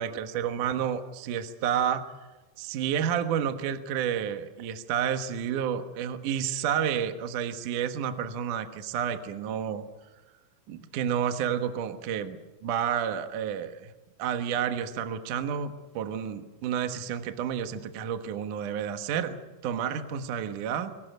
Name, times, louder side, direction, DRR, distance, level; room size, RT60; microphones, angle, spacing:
voice 1, 0.0-2.0 2.6-9.8 10.7-13.9 14.2-20.9, right 8 dB, 65° right, 8 dB, 2.1 m, -30 dB
24.5 x 18.5 x 8.0 m, 1.2 s
omnidirectional pair, 5.5 m